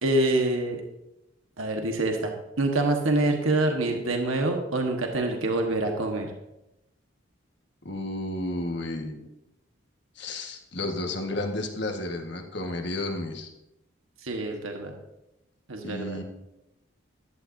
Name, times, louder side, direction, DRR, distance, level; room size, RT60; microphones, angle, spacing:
voice 1, 0.0-0.8 1.6-2.3 2.6-6.3 14.2-14.9 15.7-16.2, right 2 dB, 80° right, 3 dB, 1.4 m, -26 dB
voice 2, 7.8-9.3 10.2-13.5 15.8-16.2, left 2 dB, 55° left, 3 dB, 1.5 m, -32 dB
15.0 x 11.5 x 2.7 m, 0.90 s
head